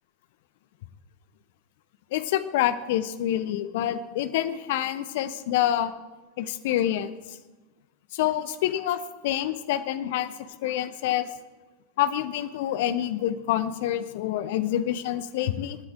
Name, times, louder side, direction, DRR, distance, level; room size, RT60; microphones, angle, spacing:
voice 1, 2.1-5.9 6.4-7.4 8.1-10.3 10.6-11.3 12.0-15.8, left 12 dB, 50° left, 12 dB, 0.8 m, -27 dB
25.5 x 9.8 x 3.6 m, 1.2 s
figure-of-eight pair, 90°, 0 cm